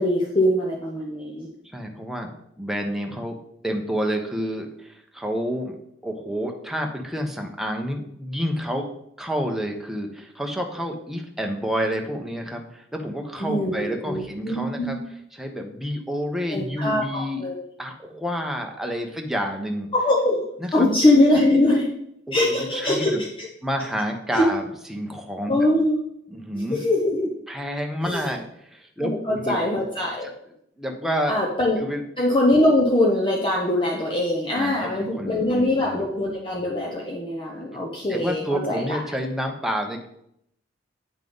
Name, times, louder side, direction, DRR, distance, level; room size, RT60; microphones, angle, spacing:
voice 1, 0.0-1.5 13.4-15.0 16.5-17.6 19.9-20.5 20.7-21.9 22.3-23.5 24.3-24.5 25.5-26.0 26.5-27.3 28.0-28.2 29.0-30.3 31.3-31.8 32.2-39.0, left 1 dB, 30° left, -2 dB, 0.9 m, -22 dB
voice 2, 1.7-2.3 2.6-3.4 3.6-5.8 6.0-8.9 9.2-15.0 15.4-17.4 17.8-19.9 20.6-20.9 22.3-23.2 23.6-24.6 24.9-25.6 26.3-26.8 27.5-29.6 30.2-30.3 30.8-31.4 31.8-32.0 34.5-36.0 37.7-37.8 38.1-40.1, equal, ahead, 2 dB, 1.0 m, -29 dB
9.1 x 5.7 x 3.9 m, 0.74 s
head